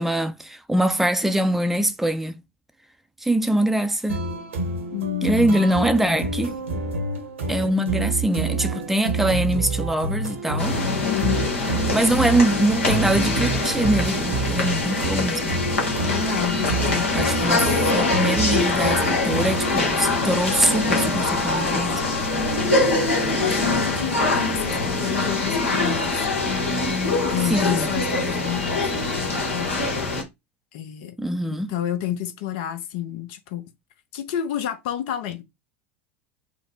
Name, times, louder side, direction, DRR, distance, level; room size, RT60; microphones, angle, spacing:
voice 1, 0.0-2.4 3.2-4.2 5.2-6.5 7.5-10.8 11.9-15.6 17.1-22.0 27.5-27.9 31.2-31.7, right 1 dB, 5° right, 0.6 m, -23 dB
sound 1, 4.1-19.8, right 3 dB, 75° right, 1.2 m, -28 dB
voice 2, 4.9-5.6 11.0-11.5 16.1-17.1 23.3-26.2 27.3-30.1 30.7-31.2 31.4-33.7 34.1-35.4, left 11 dB, 55° left, 0.9 m, -30 dB
sound 2, 10.6-30.2, left 2 dB, 75° left, 1.3 m, -23 dB
4.9 x 2.2 x 3.8 m
figure-of-eight pair, 75°, 7 cm